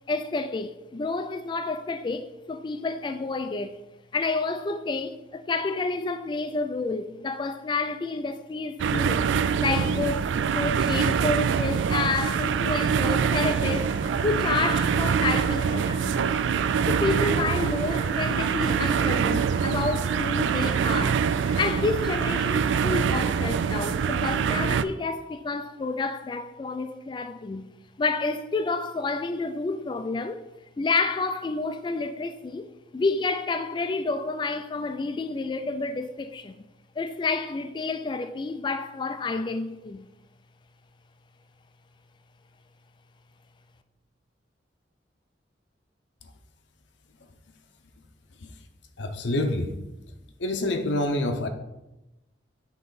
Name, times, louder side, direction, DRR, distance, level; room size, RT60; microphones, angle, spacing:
voice 1, 0.1-3.8 4.1-13.9 14.2-16.2 16.9-27.7 28.0-30.4 30.8-32.7 32.9-36.6 37.0-40.1, left 3 dB, 25° left, 0.3 m, -29 dB
sound 1, 8.8-24.8, right 6 dB, 85° right, 0.3 m, -25 dB
Boiling, 13.5-24.2, right 2 dB, 25° right, 1.1 m, -41 dB
voice 2, 48.3-48.7 49.0-49.7 50.4-51.5, left 1 dB, 80° left, 0.7 m, -27 dB
8.6 x 3.8 x 4.0 m
head